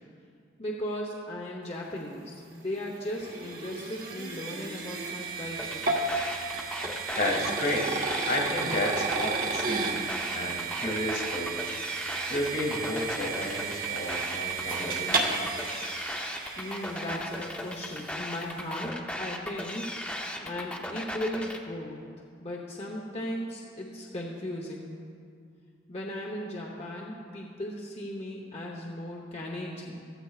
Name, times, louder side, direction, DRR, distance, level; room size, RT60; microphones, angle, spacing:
voice 1, 0.6-5.9 16.6-19.9 20.4-22.0 22.4-25.0 25.9-30.1, left 1 dB, 35° left, -2 dB, 0.9 m, -37 dB
sound 1, 2.4-17.6, right 4 dB, 50° right, 1.3 m, -33 dB
sound 2, 5.6-21.6, left 1 dB, 5° left, 0.7 m, -37 dB
voice 2, 7.2-7.9 8.3-10.0 10.3-11.6 12.3-15.4, left 1 dB, 55° left, -1 dB, 2.1 m, -32 dB
15.0 x 14.5 x 2.4 m, 2.3 s
head